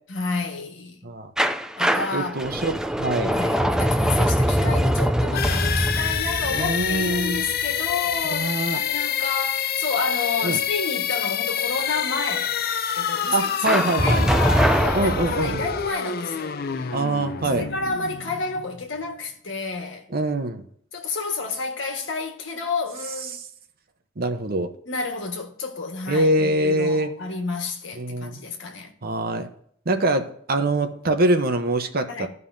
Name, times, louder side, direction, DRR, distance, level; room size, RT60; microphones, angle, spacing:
voice 1, 0.1-1.0 1.8-2.3 3.3-12.6 12.9-17.0 17.5-20.1 20.9-23.4 24.8-28.9 32.1-32.3, left 4 dB, 70° left, 1.6 m, -30 dB
sound 1, 1.4-8.1 13.6-15.9, equal, 5° right, 0.4 m, -23 dB
voice 2, 2.1-3.4 6.5-7.4 8.3-8.8 10.4-10.6 13.3-14.3 14.9-15.7 16.9-17.7 20.1-20.6 24.2-24.7 26.1-27.1 28.0-28.4 29.0-29.5 29.9-32.3, right 1 dB, 50° right, 0.9 m, -24 dB
sound 2, 5.3-19.0, left 8 dB, 50° left, 0.5 m, -27 dB
14.5 x 5.4 x 2.7 m
head